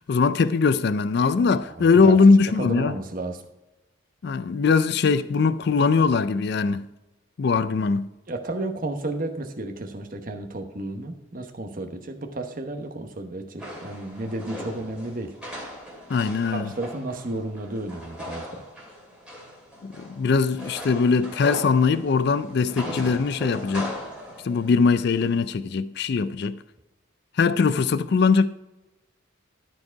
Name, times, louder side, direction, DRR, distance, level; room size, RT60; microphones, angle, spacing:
voice 1, 0.1-3.0 4.2-6.8 7.4-8.0 16.1-16.7 19.8-23.9 24.4-26.5 27.4-28.5, left 4 dB, 50° left, 0.4 m, -21 dB
voice 2, 1.5-2.2 2.6-3.4 8.3-15.3 16.5-18.6, right 2 dB, 40° right, 1.0 m, -33 dB
sound 1, 13.6-25.4, left 1 dB, 5° right, 2.2 m, -39 dB
12.5 x 4.7 x 4.6 m
head